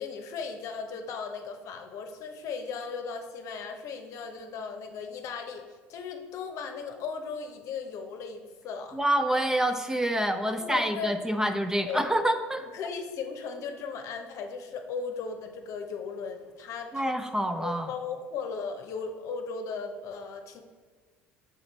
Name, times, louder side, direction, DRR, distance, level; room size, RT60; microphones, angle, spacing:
voice 1, 0.0-9.0 10.4-11.1 11.9-12.1 12.7-17.2 17.6-20.6, left 5 dB, 55° left, 5 dB, 0.8 m, -37 dB
voice 2, 8.9-12.7 16.9-17.9, right 1 dB, 10° right, 7 dB, 0.5 m, -27 dB
6.5 x 4.1 x 4.1 m, 1.5 s
hypercardioid pair, 65°, 6 cm